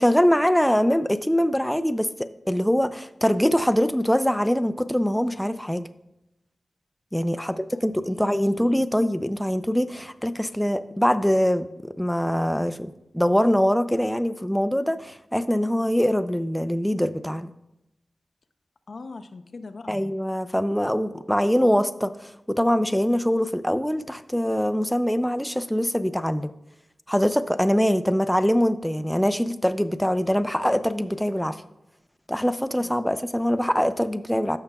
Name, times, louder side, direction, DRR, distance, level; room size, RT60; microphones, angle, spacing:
voice 1, 0.0-2.1 2.5-5.9 7.1-17.5 19.9-26.5 27.1-31.6 32.3-34.6, equal, 5° left, 10 dB, 0.4 m, -23 dB
voice 2, 7.4-8.8 18.9-20.0 32.8-33.1, left 3 dB, 65° left, 8 dB, 0.5 m, -43 dB
14.5 x 5.7 x 2.3 m, 0.89 s
cardioid pair, 65°, 0 cm